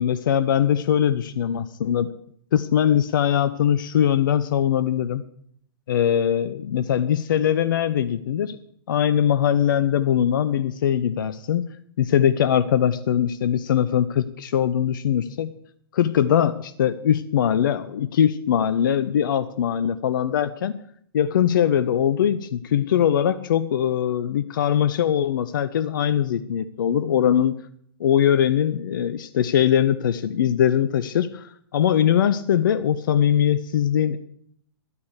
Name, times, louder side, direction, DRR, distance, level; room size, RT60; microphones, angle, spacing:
voice 1, 0.0-2.1 2.5-5.2 5.9-8.6 8.9-11.7 12.0-15.5 15.9-20.7 21.1-27.5 28.0-34.2, left 9 dB, 55° left, 13 dB, 0.6 m, -21 dB
11.5 x 9.9 x 6.3 m, 0.65 s
figure-of-eight pair, 110°, 13 cm